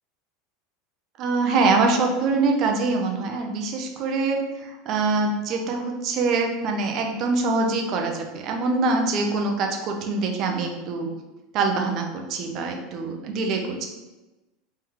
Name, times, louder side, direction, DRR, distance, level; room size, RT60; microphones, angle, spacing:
voice 1, 1.2-11.1 11.5-13.8, right 3 dB, 45° right, 3 dB, 0.6 m, -24 dB
3.7 x 3.3 x 3.0 m, 1.1 s
supercardioid pair, 135°, 0 cm